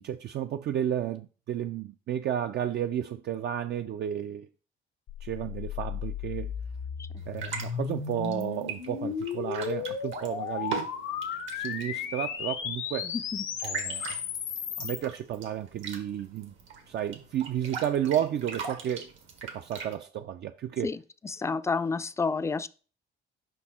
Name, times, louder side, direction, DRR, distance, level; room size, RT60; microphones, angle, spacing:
voice 1, 0.0-4.5 5.2-6.5 7.3-10.9 11.5-13.1 13.6-14.2 14.8-16.5 16.9-19.1 19.4-20.9, right 10 dB, 60° right, 0.4 m, -32 dB
sound 1, 5.1-15.0, left 8 dB, 90° left, 0.8 m, -35 dB
sound 2, 7.2-19.9, right 5 dB, 80° right, 1.5 m, -41 dB
voice 2, 13.1-13.4 20.8-21.0 21.2-22.7, left 4 dB, 15° left, 0.3 m, -29 dB
5.3 x 4.4 x 4.3 m
cardioid pair, 90°, 20 cm